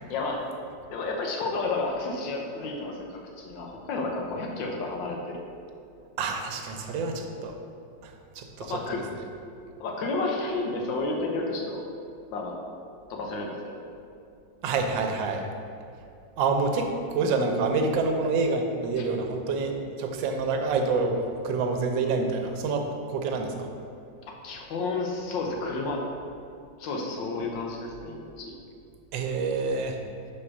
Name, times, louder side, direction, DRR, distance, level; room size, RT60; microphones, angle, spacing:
voice 1, 0.1-0.4 0.9-5.4 8.6-9.0 9.8-11.8 12.3-12.6 13.1-13.9 19.0-19.1 24.4-26.0 26.8-28.6, left 3 dB, 80° left, 0 dB, 1.5 m, -31 dB
voice 2, 6.2-7.5 8.0-8.8 14.6-15.5 16.4-23.7 29.1-30.0, right 4 dB, 80° right, 4 dB, 1.4 m, -27 dB
5.0 x 4.2 x 5.9 m, 2.5 s
omnidirectional pair, 2.0 m